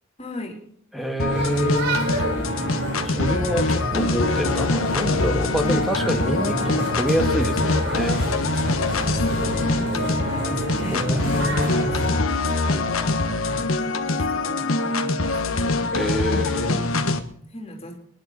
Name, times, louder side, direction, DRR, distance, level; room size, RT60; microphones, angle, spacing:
voice 1, 0.2-0.6 5.6-5.8 9.2-16.2 17.1-18.0, left 1 dB, 30° left, 2 dB, 3.3 m, -38 dB
voice 2, 0.9-2.1 3.0-8.2 10.9-12.1 15.9-16.9, equal, ahead, 3 dB, 1.7 m, -27 dB
sound 1, 1.2-17.2, left 3 dB, 90° left, 1.4 m, -24 dB
sound 2, 1.3-12.1, right 1 dB, 60° right, 4.2 m, -28 dB
22.5 x 11.0 x 4.2 m, 0.62 s
head